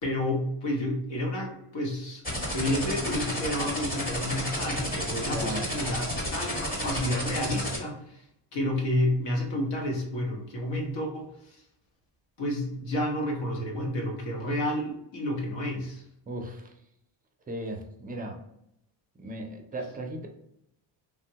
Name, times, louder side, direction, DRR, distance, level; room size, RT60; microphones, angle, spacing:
voice 1, 0.0-2.2 2.5-8.2 8.5-11.6 12.4-16.0, left 1 dB, 80° left, 0 dB, 1.1 m, -30 dB
sound 1, 2.2-7.8, equal, 20° left, 1.1 m, -31 dB
voice 2, 5.3-5.7 16.3-16.7 17.5-18.4 19.2-20.3, right 1 dB, 20° right, 2 dB, 0.4 m, -36 dB
3.4 x 2.2 x 2.7 m, 0.80 s
cardioid pair, 150°, 44 cm